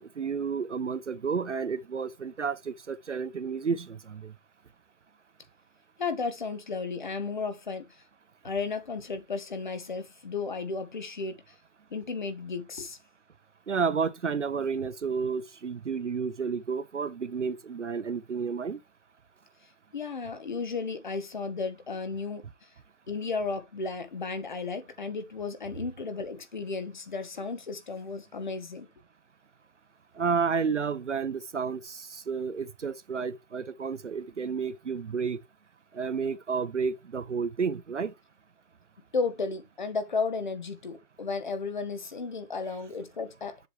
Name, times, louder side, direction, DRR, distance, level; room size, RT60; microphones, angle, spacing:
voice 1, 0.0-4.3 13.7-18.8 30.2-35.4 35.9-38.1, right 5 dB, 50° right, 0.7 m, -31 dB
voice 2, 6.0-8.0 8.4-11.5 11.9-13.0 19.9-22.7 23.1-28.9 39.1-43.6, left 4 dB, 30° left, 1.2 m, -34 dB
7.8 x 6.2 x 3.3 m
hypercardioid pair, 170°, 46 cm